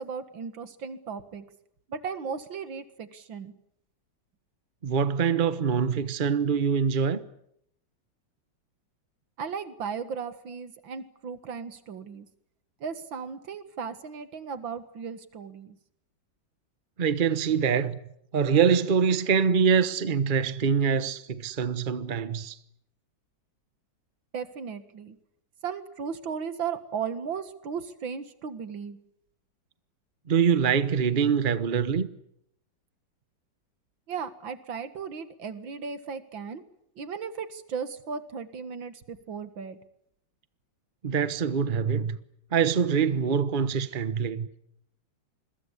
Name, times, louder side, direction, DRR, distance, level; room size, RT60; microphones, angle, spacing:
voice 1, 0.0-1.5 1.9-3.5 9.4-12.3 12.8-15.8 24.3-25.2 25.6-29.0 34.1-36.6 37.0-39.8, right 6 dB, 85° right, 2.5 m, -36 dB
voice 2, 4.8-7.2 17.0-18.0 18.3-22.6 30.3-32.1 41.0-42.2 42.5-44.5, right 6 dB, 30° right, 1.1 m, -24 dB
27.5 x 22.0 x 8.4 m
omnidirectional pair, 2.0 m